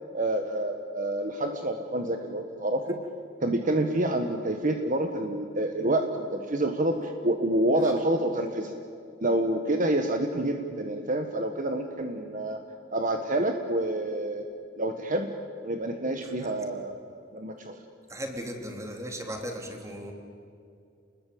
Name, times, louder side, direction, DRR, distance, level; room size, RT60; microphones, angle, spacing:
voice 1, 0.1-3.0 3.4-8.8 9.2-12.6 12.9-14.5 14.8-15.3 15.6-17.8, right 1 dB, 45° right, 5 dB, 1.5 m, -28 dB
voice 2, 18.1-20.1, equal, 15° right, 3 dB, 3.4 m, -37 dB
30.0 x 21.0 x 8.7 m, 2.4 s
head